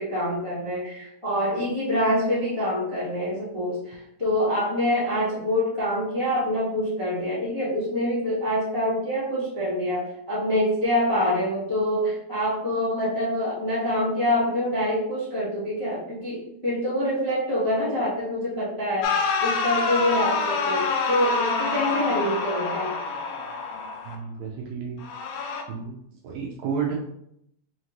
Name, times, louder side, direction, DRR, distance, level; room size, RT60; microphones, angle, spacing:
voice 1, 0.0-23.0, left 1 dB, 20° left, -10 dB, 0.7 m, -26 dB
sound 1, 19.0-24.2 25.0-25.6, left 4 dB, 80° left, 1.6 m, -26 dB
voice 2, 24.0-25.0 25.7-26.0 26.2-26.9, right 6 dB, 75° right, -2 dB, 1.7 m, -31 dB
5.7 x 2.6 x 3.0 m, 0.76 s
omnidirectional pair, 3.5 m